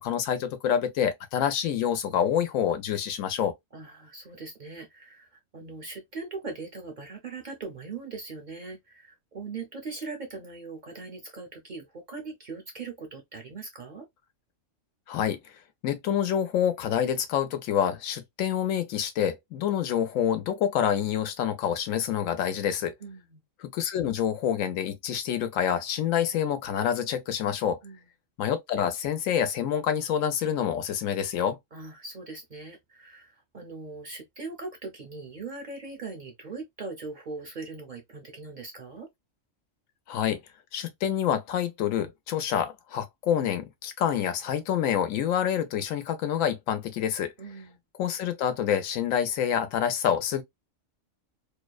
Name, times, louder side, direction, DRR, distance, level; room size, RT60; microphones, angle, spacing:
voice 1, 0.0-3.5 15.1-15.4 15.8-22.9 23.6-27.8 28.4-31.6 40.1-40.4 40.7-47.3 48.0-50.4, left 9 dB, 90° left, 1.0 m, -27 dB
voice 2, 3.7-14.1 23.0-23.4 27.8-28.1 31.7-39.1 47.4-47.8, right 4 dB, 50° right, 0.6 m, -40 dB
2.7 x 2.1 x 2.2 m
omnidirectional pair, 1.3 m